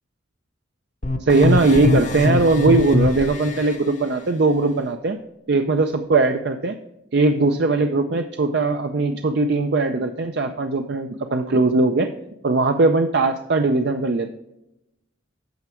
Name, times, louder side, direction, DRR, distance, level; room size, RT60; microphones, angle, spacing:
sound 1, 1.0-3.8, left 2 dB, 35° left, 0.7 m, -22 dB
voice 1, 1.2-5.2 5.5-6.8 7.1-12.1 12.4-14.3, right 3 dB, 55° right, 6 dB, 0.5 m, -19 dB
9.3 x 6.0 x 4.4 m, 0.90 s
head